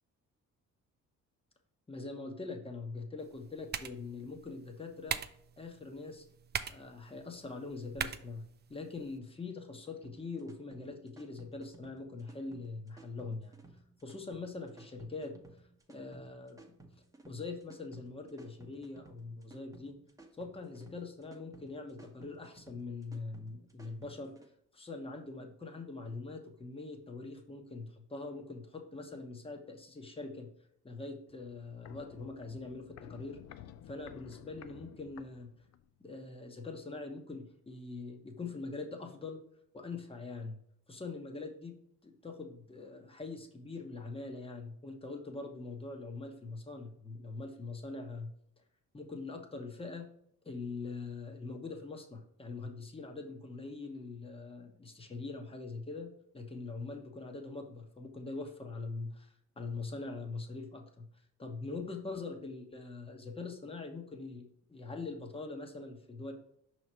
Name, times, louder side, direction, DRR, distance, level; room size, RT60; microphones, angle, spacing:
voice 1, 1.9-5.3 5.6-6.2 6.7-8.4 8.7-13.6 14.0-15.3 15.9-16.6 17.3-19.9 20.4-24.3 24.7-30.5 30.8-33.4 33.9-35.5 36.0-39.4 39.7-40.6 40.9-41.7 42.0-48.3 48.9-50.1 50.4-61.1 61.4-66.3, left 3 dB, 20° left, 3 dB, 1.1 m, -43 dB
sound 1, 3.2-9.2, right 7 dB, 35° right, 0.4 m, -43 dB
sound 2, 10.0-24.5, right 2 dB, 10° right, 1.0 m, -56 dB
Walk footsteps, 31.3-36.0 36.2-36.3, left 10 dB, 60° left, 0.4 m, -53 dB
5.5 x 3.1 x 5.5 m, 0.68 s
cardioid pair, 90°, 30 cm